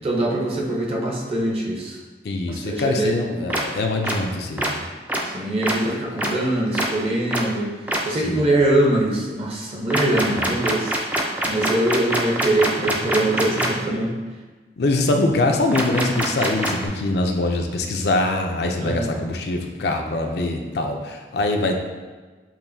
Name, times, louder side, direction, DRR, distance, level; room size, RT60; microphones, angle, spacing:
voice 1, 0.0-2.0 2.5-3.2 5.2-7.7 8.0-11.1 11.4-14.1 18.8-19.3, right 1 dB, 35° right, -2 dB, 0.8 m, -23 dB
voice 2, 2.2-4.8 8.2-8.5 10.3-10.5 13.5-13.7 14.8-21.8, left 2 dB, 65° left, 3 dB, 0.5 m, -23 dB
sound 1, 3.5-3.6 4.0-4.1 4.6-4.7 5.1-5.2 5.6-5.7 6.2-6.3 6.7-6.9 7.3-7.4 7.9-8.0 9.9-13.7 15.7-16.9, right 1 dB, 10° right, 0.4 m, -23 dB
7.1 x 2.6 x 2.6 m, 1.3 s
head